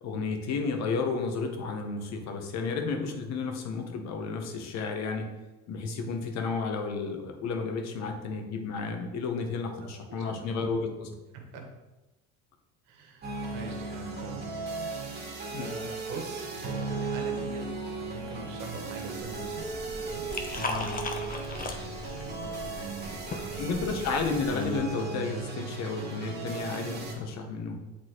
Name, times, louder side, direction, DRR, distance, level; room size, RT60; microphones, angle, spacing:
voice 1, 0.0-5.3 5.7-11.1 15.5-15.7 20.7-20.9 23.6-27.8, left 4 dB, 55° left, 5 dB, 1.1 m, -32 dB
voice 2, 10.2-10.5 11.3-11.7 12.9-14.5 15.5-19.7 20.0-20.3 21.5-23.9, right 4 dB, 80° right, 2 dB, 1.3 m, -42 dB
sound 1, 13.2-27.1, right 3 dB, 30° right, 2.1 m, -36 dB
Liquid, 19.2-24.8, left 3 dB, 25° left, 0.7 m, -38 dB
7.7 x 4.0 x 3.1 m, 1.1 s
supercardioid pair, 95°, 32 cm